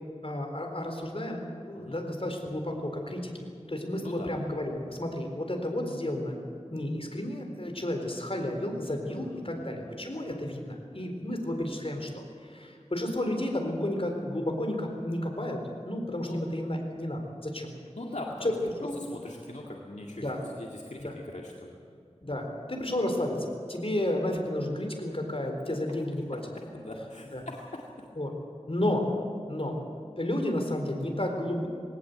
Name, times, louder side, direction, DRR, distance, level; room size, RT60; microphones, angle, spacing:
voice 1, 0.2-3.3 3.7-15.6 15.8-17.7 18.4-18.5 18.8-19.0 20.2-20.4 21.0-21.2 22.2-26.4 27.3-27.4 28.2-28.3 28.7-29.1 29.5-29.8 30.2-31.7, left 1 dB, 55° left, 3 dB, 4.1 m, -32 dB
voice 2, 4.0-4.3 9.1-10.0 16.2-16.4 18.0-18.5 19.0-21.8 26.7-27.6, left 1 dB, 80° left, -2 dB, 2.2 m, -42 dB
20.5 x 18.0 x 8.0 m, 2.4 s
wide cardioid pair, 45°, 12 cm